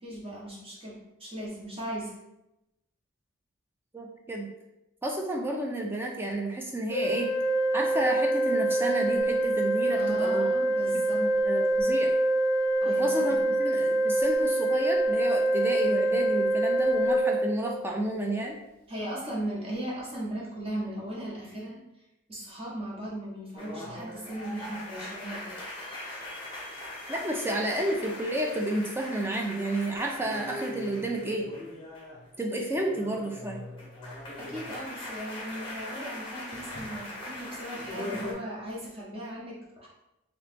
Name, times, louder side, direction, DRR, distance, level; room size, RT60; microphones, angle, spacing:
voice 1, 0.0-2.1 9.9-11.3 12.8-13.3 18.9-21.8 22.3-25.6 34.4-39.9, right 1 dB, 25° right, -5 dB, 0.9 m, -37 dB
voice 2, 3.9-4.5 5.0-7.3 7.7-10.5 10.9-12.1 12.9-18.6 27.1-31.5 32.4-33.6, right 1 dB, 10° right, 0 dB, 0.4 m, -31 dB
Organ, 6.9-17.9, right 1 dB, 50° right, 1.1 m, -25 dB
sound 1, 23.6-32.3 32.6-38.3, left 1 dB, 25° left, 0.8 m, -40 dB
3.0 x 3.0 x 3.3 m, 0.92 s
head